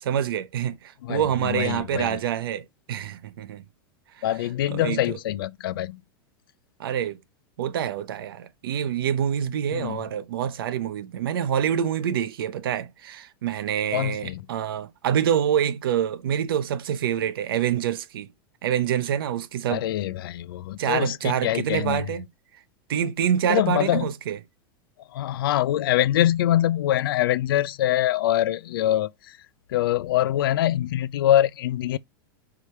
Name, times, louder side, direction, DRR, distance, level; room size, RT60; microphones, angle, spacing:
voice 1, 0.0-3.6 4.2-4.3 4.7-5.2 6.8-7.2 7.6-18.3 18.6-19.8 20.8-22.2 22.9-24.4, right 9 dB, 85° right, 0.8 m, -26 dB
voice 2, 1.0-2.2 4.2-6.0 9.7-10.0 13.9-14.4 19.7-22.0 23.5-24.0 25.1-29.1 29.7-32.0, left 12 dB, 80° left, 0.5 m, -24 dB
5.0 x 4.9 x 4.2 m
supercardioid pair, 145°, 12 cm